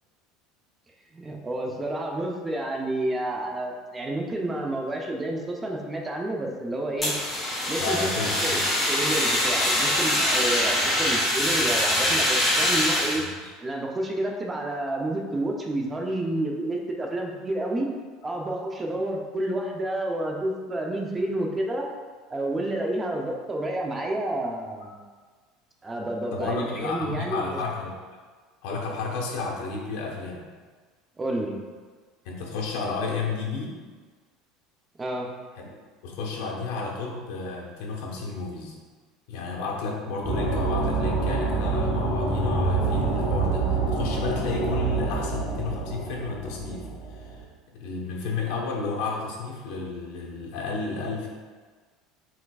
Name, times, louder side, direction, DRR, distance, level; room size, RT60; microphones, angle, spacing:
voice 1, 1.1-7.1 7.7-8.1 8.4-8.6 8.9-13.2 13.6-17.9 18.2-21.9 22.3-25.0 25.8-27.5 31.2-31.6 35.0-35.3, right 1 dB, 15° right, 1 dB, 0.5 m, -29 dB
Fire, 7.0-13.2, left 1 dB, 15° left, 1.3 m, -24 dB
voice 2, 7.8-8.6 13.2-13.5 26.3-28.0 28.6-30.4 32.2-33.7 35.5-35.7 36.0-38.8 39.3-47.4 47.7-51.3, left 4 dB, 75° left, -2 dB, 0.9 m, -32 dB
sound 1, 40.2-47.4, right 3 dB, 40° left, 1.3 m, -26 dB
4.6 x 4.3 x 2.3 m, 1.5 s
cardioid pair, 140°, 0 cm